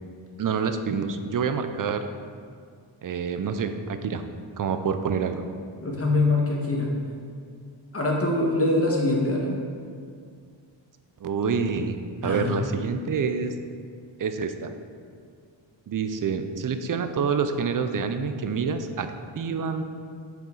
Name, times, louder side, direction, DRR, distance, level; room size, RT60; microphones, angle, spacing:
voice 1, 0.4-2.0 3.0-4.3 4.6-5.4 11.2-12.0 12.2-13.5 14.2-14.7 15.9-19.8, right 5 dB, 45° right, 8 dB, 0.5 m, -27 dB
voice 2, 5.8-6.9 7.9-9.5 12.2-12.6, left 2 dB, 30° left, -2 dB, 1.5 m, -23 dB
7.2 x 5.9 x 3.9 m, 2.2 s
wide cardioid pair, 95°, 48 cm